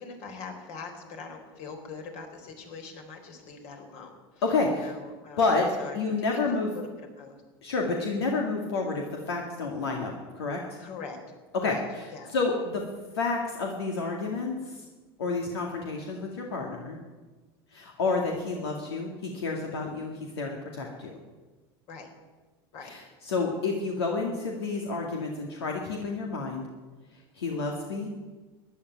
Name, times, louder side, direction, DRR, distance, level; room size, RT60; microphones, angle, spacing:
voice 1, 0.0-4.1 4.8-5.5 5.8-7.4 10.8-11.2 11.6-11.8 12.1-12.3 21.9-22.1 22.7-22.9, left 5 dB, 60° left, 4 dB, 3.9 m, -42 dB
voice 2, 4.4-4.9 5.4-5.7 5.9-6.7 7.6-10.8 11.5-11.8 12.3-12.8 13.1-14.8 15.2-17.0 17.7-21.2 22.8-26.7 27.4-28.1, left 3 dB, 90° left, 1 dB, 2.2 m, -29 dB
13.5 x 10.5 x 9.4 m, 1.3 s
hypercardioid pair, 95°, 13 cm